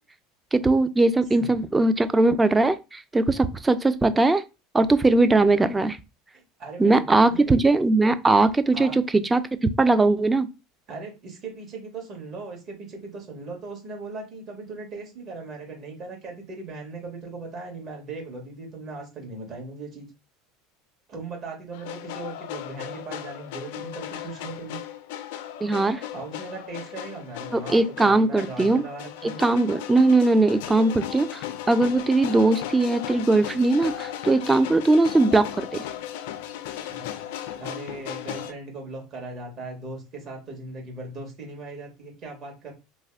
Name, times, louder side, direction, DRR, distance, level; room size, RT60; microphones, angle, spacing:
voice 1, 0.5-4.4 4.7-6.0 6.8-10.5 25.6-26.0 27.5-28.8 29.4-31.4 31.7-35.7, right 2 dB, 15° right, 0.4 m, -20 dB
voice 2, 6.3-7.5 8.7-9.2 10.9-20.1 21.1-24.8 26.1-29.4 36.9-37.0 37.6-42.7, right 3 dB, 45° right, 1.7 m, -38 dB
sound 1, 21.7-38.5, left 11 dB, 75° left, 0.3 m, -36 dB
3.2 x 2.1 x 3.4 m
supercardioid pair, 105°, 0 cm